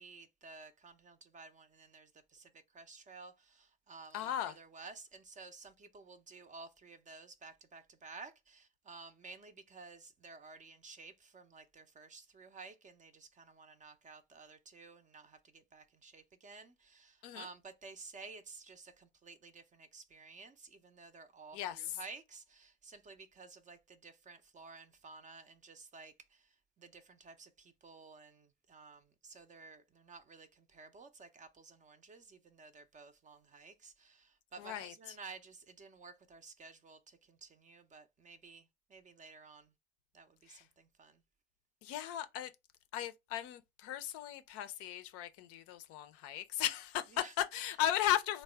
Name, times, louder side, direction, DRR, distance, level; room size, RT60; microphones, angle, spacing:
voice 1, 0.0-39.7 40.1-41.2 47.1-47.3, right 4 dB, 25° right, 0.5 m, -54 dB
voice 2, 4.1-4.5 17.2-17.5 21.5-22.0 34.6-34.9 40.5-40.6 41.8-42.5 42.9-48.4, left 11 dB, 50° left, 0.5 m, -36 dB
3.4 x 2.1 x 3.3 m
figure-of-eight pair, 70°, 31 cm